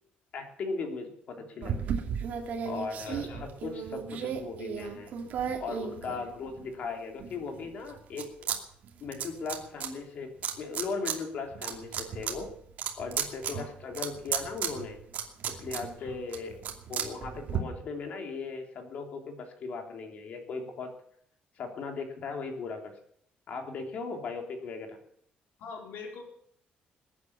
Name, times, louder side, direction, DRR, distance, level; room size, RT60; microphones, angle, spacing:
voice 1, 0.3-1.8 2.6-5.1 5.6-8.5 9.0-12.5 13.0-15.0 15.5-16.6 16.9-20.9 21.6-23.0 23.5-25.0, left 4 dB, 50° left, 4 dB, 3.1 m, -38 dB
sound 1, 1.6-6.7 7.2-8.6 8.8-9.9 10.4-11.2 11.5-17.6, right 8 dB, 55° right, 2.6 m, -35 dB
voice 2, 3.1-3.5 13.5-13.7 16.0-16.2 25.6-26.2, left 5 dB, 90° left, 2 dB, 4.3 m, -43 dB
21.0 x 9.7 x 7.2 m, 0.67 s
cardioid pair, 175°, 3 cm